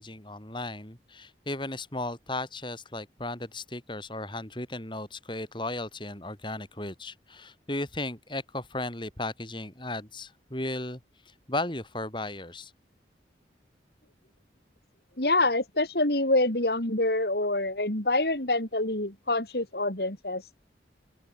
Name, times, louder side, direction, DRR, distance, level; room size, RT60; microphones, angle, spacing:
voice 1, 0.0-11.0 11.5-12.7, left 2 dB, 25° left, 5.0 m, -35 dB
voice 2, 15.2-20.4, left 2 dB, 60° left, 3.8 m, -26 dB
open air
head